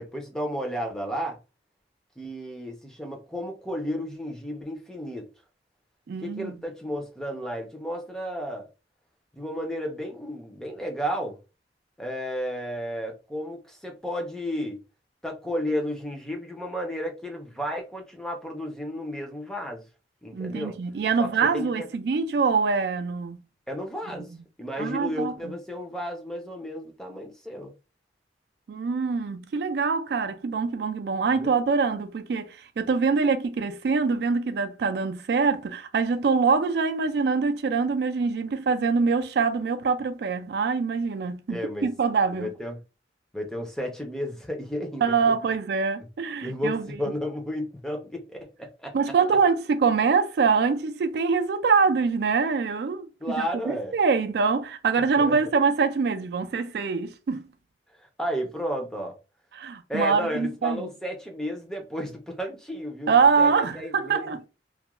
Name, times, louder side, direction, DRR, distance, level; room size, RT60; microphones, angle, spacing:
voice 1, 0.0-1.4 2.2-5.3 6.2-8.7 9.3-11.4 12.0-14.8 15.2-19.8 20.2-20.8 21.2-21.9 23.7-24.3 24.6-27.7 31.4-31.5 41.5-41.9 42.3-42.8 43.3-45.1 46.4-49.0 53.2-54.0 55.0-55.4 58.0-59.2 59.9-64.5, equal, 5° left, 0.5 m, -33 dB
voice 2, 6.1-6.6 20.3-23.4 24.8-25.5 28.7-42.5 45.0-47.0 48.9-57.4 59.5-60.9 63.1-64.4, right 5 dB, 60° right, 0.3 m, -24 dB
2.3 x 2.1 x 2.9 m
head